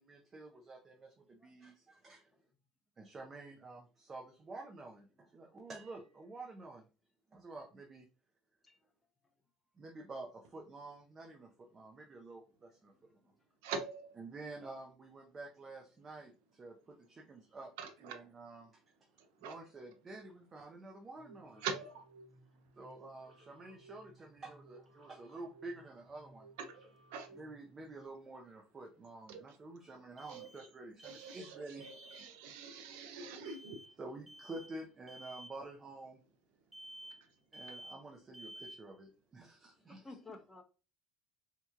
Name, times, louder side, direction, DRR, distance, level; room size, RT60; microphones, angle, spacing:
voice 1, 0.0-2.3 3.0-6.8 7.3-8.1 9.8-12.9 14.2-17.7 18.1-18.8 19.4-21.6 22.8-26.5 27.3-31.8 34.0-36.2 37.5-40.1, right 2 dB, 30° right, 0.8 m, -49 dB
voice 2, 2.0-2.4 8.6-8.9 11.8-11.9 13.1-13.2 22.5-22.6 23.7-23.8 36.8-37.1 39.9-40.6, left 3 dB, 10° left, 0.9 m, -56 dB
voice 3, 13.6-14.2 17.8-18.3 19.2-19.6 21.6-22.8 25.0-25.1 26.6-27.4 29.3-29.8 30.3-30.7 31.0-34.0 37.1-37.4, right 5 dB, 85° right, 0.5 m, -45 dB
sound 1, 21.2-28.0, right 2 dB, 55° right, 1.5 m, -61 dB
sound 2, 26.9-27.0 30.2-31.6 31.8-32.3 33.4-33.9 34.3-34.8 35.1-35.6 36.7-37.3 37.5-38.1 38.3-38.9, equal, 10° right, 0.3 m, -52 dB
4.2 x 2.9 x 2.4 m
supercardioid pair, 90°, 0 cm